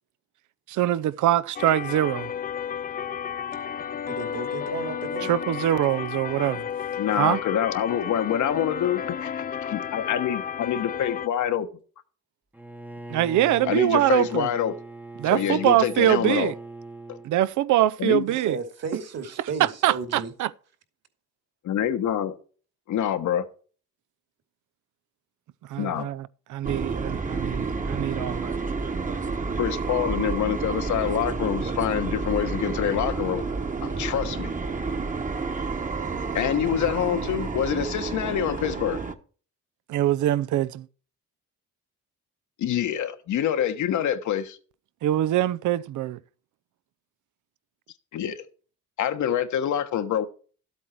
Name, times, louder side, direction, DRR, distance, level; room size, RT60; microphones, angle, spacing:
voice 1, 0.7-2.3 5.3-6.7 7.2-7.4 13.1-14.5 15.2-16.5 17.2-18.6 19.6-20.5 25.7-28.5 39.9-40.9 45.0-46.2, right 13 dB, 75° right, 0.6 m, -23 dB
sound 1, 1.6-11.3, left 8 dB, 30° left, 0.5 m, -32 dB
voice 2, 4.1-5.3 18.3-20.3, right 5 dB, 55° right, 2.7 m, -34 dB
voice 3, 7.0-11.7 13.6-14.7 15.3-16.5 17.1-17.2 18.0-18.2 21.6-22.3 22.9-23.5 25.8-26.1 29.6-33.4 33.8-34.5 36.3-39.0 42.6-44.6 48.1-48.4 49.0-50.3, left 10 dB, 70° left, 1.3 m, -26 dB
Bowed string instrument, 12.5-17.3, right 2 dB, 5° right, 0.9 m, -40 dB
sound 2, 26.6-39.1, right 4 dB, 25° right, 1.3 m, -30 dB
12.5 x 8.3 x 4.5 m
cardioid pair, 90°, 30 cm